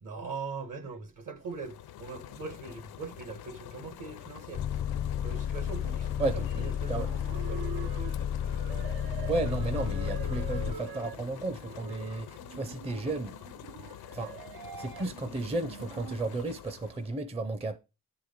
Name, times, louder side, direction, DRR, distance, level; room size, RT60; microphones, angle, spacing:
voice 1, 0.0-4.6 5.2-7.6, right 4 dB, 60° right, 1.4 m, -41 dB
sound 1, 1.4-17.2, left 11 dB, 85° left, 0.6 m, -47 dB
Bus, 4.5-10.8, left 8 dB, 40° left, 0.4 m, -32 dB
voice 2, 6.2-7.1 9.3-13.4 14.1-14.3 14.8-17.8, right 2 dB, 15° right, 0.5 m, -33 dB
sound 2, 6.8-16.1, right 8 dB, 80° right, 0.8 m, -44 dB
10.0 x 4.8 x 5.1 m
wide cardioid pair, 125°, 36 cm